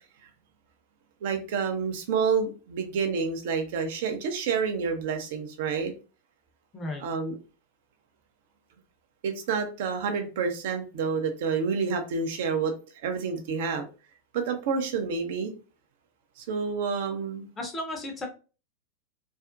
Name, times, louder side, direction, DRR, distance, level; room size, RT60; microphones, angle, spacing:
voice 1, 1.2-5.9 7.0-7.4 9.2-12.7 13.0-13.8 14.3-15.5 16.4-17.5, right 5 dB, 55° right, 6 dB, 0.5 m, -28 dB
voice 2, 6.7-7.0 17.6-18.3, left 1 dB, 20° left, 2 dB, 0.6 m, -34 dB
2.5 x 2.0 x 2.4 m, 0.34 s
figure-of-eight pair, 90°, 0 cm